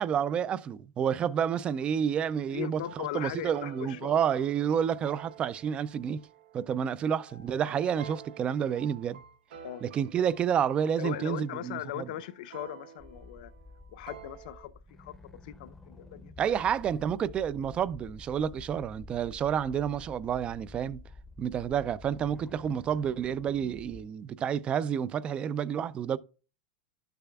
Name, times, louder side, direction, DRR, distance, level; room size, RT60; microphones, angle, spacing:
voice 1, 0.0-6.2 6.5-9.2 9.8-12.1 16.4-21.0 21.4-26.2, right 8 dB, 20° right, 0.4 m, -29 dB
voice 2, 2.5-4.2 9.6-9.8 11.0-13.5 13.9-14.7 15.0-15.1 15.4-16.3, left 13 dB, 65° left, 0.7 m, -39 dB
sound 1, 2.8-14.7, right 8 dB, 85° right, 1.1 m, -50 dB
sound 2, 13.0-24.0, left 2 dB, 5° left, 0.7 m, -50 dB
12.0 x 6.8 x 2.3 m
supercardioid pair, 160°, 5 cm